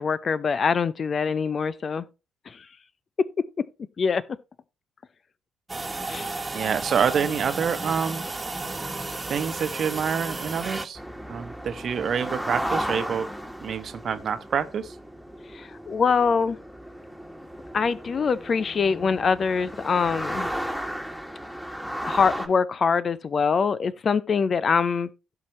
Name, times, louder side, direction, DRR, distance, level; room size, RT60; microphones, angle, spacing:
voice 1, 0.0-2.0 2.5-2.7 4.0-4.2 6.1-6.3 15.5-16.6 17.7-20.5 22.0-25.1, left 5 dB, 45° left, 0.6 m, -24 dB
sound 1, 5.7-10.9, right 3 dB, 20° right, 1.4 m, -33 dB
voice 2, 6.5-8.2 9.3-11.0 11.3-13.3 13.6-15.0, right 7 dB, 50° right, 1.1 m, -27 dB
sound 2, 11.0-22.5, equal, ahead, 1.9 m, -34 dB
16.0 x 5.9 x 3.1 m
figure-of-eight pair, 45°, 0 cm